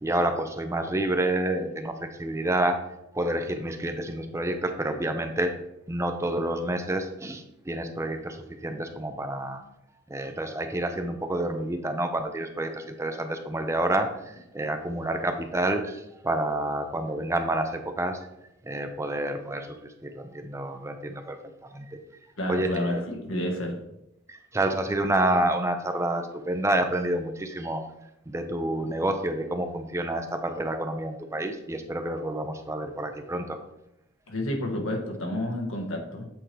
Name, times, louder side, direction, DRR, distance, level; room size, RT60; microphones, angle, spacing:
voice 1, 0.0-2.8 3.1-5.5 5.9-8.4 8.6-9.6 10.1-18.2 18.6-22.0 22.5-23.0 24.3-27.8 28.3-33.6, right 1 dB, 15° right, 7 dB, 0.5 m, -29 dB
voice 2, 22.4-23.8 28.9-29.0 34.3-36.3, left 1 dB, 85° left, 1 dB, 1.3 m, -30 dB
7.9 x 4.4 x 3.2 m, 0.85 s
head